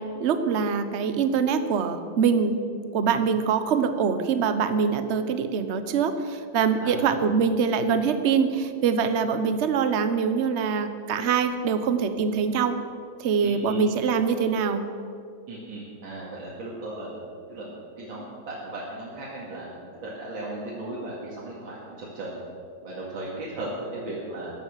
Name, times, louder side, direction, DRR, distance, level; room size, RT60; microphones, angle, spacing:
voice 1, 0.0-2.6 2.9-12.8 13.2-14.9, right 6 dB, 50° right, 9 dB, 0.9 m, -24 dB
voice 2, 6.8-7.1 13.4-13.8 15.5-17.1 17.5-19.7 20.0-22.4 22.8-24.5, right 2 dB, 75° right, -6 dB, 2.9 m, -36 dB
15.5 x 10.5 x 6.5 m, 2.4 s
omnidirectional pair, 2.2 m